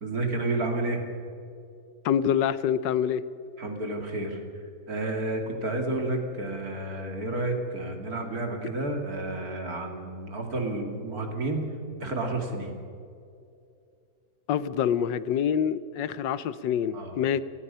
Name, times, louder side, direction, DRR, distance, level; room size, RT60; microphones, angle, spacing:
voice 1, 0.0-1.0 3.6-4.4 4.9-11.6 12.0-12.7 16.9-17.2, right 2 dB, 55° right, 3 dB, 3.2 m, -30 dB
voice 2, 2.0-3.2 14.5-17.4, left 8 dB, 80° left, 16 dB, 1.4 m, -26 dB
29.5 x 18.0 x 5.6 m, 2.5 s
omnidirectional pair, 1.9 m